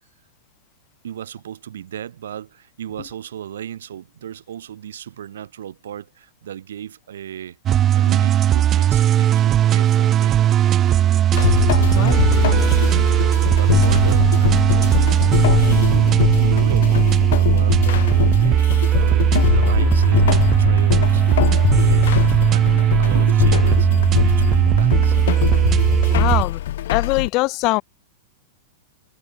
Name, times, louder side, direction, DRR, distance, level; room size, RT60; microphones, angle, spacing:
voice 1, 1.0-7.6 7.9-10.4 11.7-12.8 13.4-17.1 17.3-18.7 18.9-22.2 22.5-23.9 24.2-25.5 26.3-26.4, right 10 dB, 85° right, 5.1 m, -35 dB
sound 1, 7.7-26.4, right 11 dB, 25° right, 0.7 m, -17 dB
sound 2, 11.3-27.3, left 13 dB, 70° left, 1.6 m, -22 dB
voice 2, 26.1-26.6 26.9-27.8, left 23 dB, 40° left, 0.7 m, -22 dB
hypercardioid pair, 145°, 0 cm